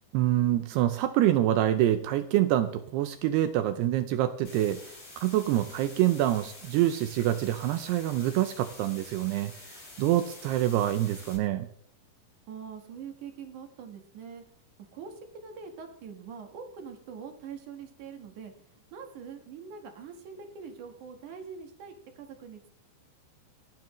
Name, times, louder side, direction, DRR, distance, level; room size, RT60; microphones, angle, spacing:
voice 1, 0.1-11.7, right 13 dB, 80° right, 10 dB, 2.5 m, -26 dB
sound 1, 4.4-11.4, left 2 dB, 50° left, 9.0 m, -48 dB
voice 2, 12.5-14.4 14.9-18.5 18.9-22.7, right 6 dB, 60° right, 5 dB, 2.3 m, -43 dB
28.5 x 9.5 x 3.1 m, 0.64 s
omnidirectional pair, 5.2 m